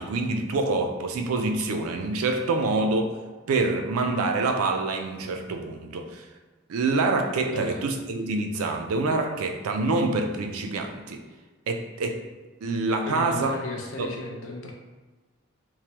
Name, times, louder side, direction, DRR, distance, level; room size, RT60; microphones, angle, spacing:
voice 1, 0.0-3.1 3.5-6.3 6.7-11.2 11.7-12.2 12.6-13.5 14.0-14.1, right 3 dB, 90° right, 4 dB, 0.4 m, -26 dB
voice 2, 7.5-7.8 13.1-14.7, left 2 dB, 70° left, 1 dB, 0.5 m, -34 dB
3.0 x 2.1 x 2.9 m, 1.3 s
head